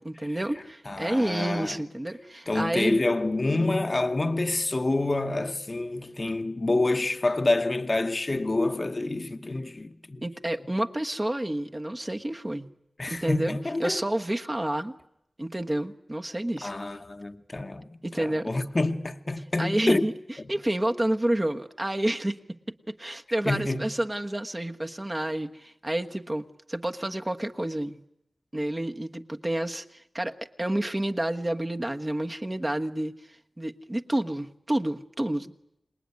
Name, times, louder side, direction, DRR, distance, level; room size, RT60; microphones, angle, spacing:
voice 1, 0.0-3.0 10.2-12.7 13.1-14.9 15.4-16.7 18.0-18.5 19.6-20.1 20.5-22.4 23.0-28.0 28.5-33.1 33.6-35.5, right 1 dB, 25° right, 1.3 m, -29 dB
voice 2, 0.8-1.8 2.5-10.2 13.0-14.0 16.6-20.0 23.4-23.8, left 2 dB, 40° left, 1.1 m, -27 dB
26.5 x 20.5 x 9.6 m
wide cardioid pair, 65°, 0 cm